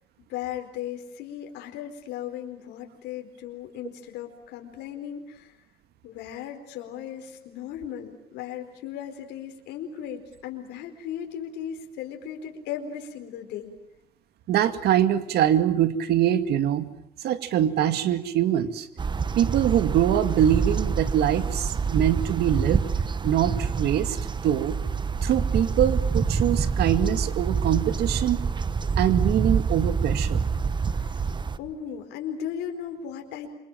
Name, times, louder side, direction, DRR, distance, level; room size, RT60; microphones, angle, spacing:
voice 1, 0.3-5.6 6.0-13.7 30.9-31.2 31.6-33.6, left 9 dB, 85° left, 4 dB, 4.4 m, -36 dB
voice 2, 14.5-16.9 17.2-18.9 19.3-22.8 23.2-24.8 25.2-28.4 29.0-30.4, right 11 dB, 75° right, 10 dB, 2.2 m, -23 dB
sound 1, 19.0-31.6, right 5 dB, 25° right, 1.2 m, -26 dB
28.0 x 25.5 x 7.4 m, 0.83 s
cardioid pair, 110°, 17 cm